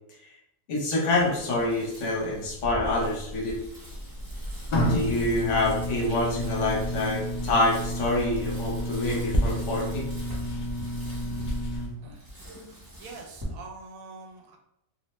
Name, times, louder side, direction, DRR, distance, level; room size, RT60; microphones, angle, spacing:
voice 1, 0.7-3.6 4.9-10.1, left 2 dB, 65° left, -3 dB, 1.1 m, -26 dB
Bicycle, 1.1-13.4, equal, 20° right, 0.7 m, -44 dB
sound 1, 3.9-11.9, equal, 80° left, 0.4 m, -30 dB
voice 2, 12.7-14.6, right 4 dB, 75° right, 2 dB, 1.0 m, -45 dB
2.6 x 2.1 x 3.0 m, 0.80 s
omnidirectional pair, 1.5 m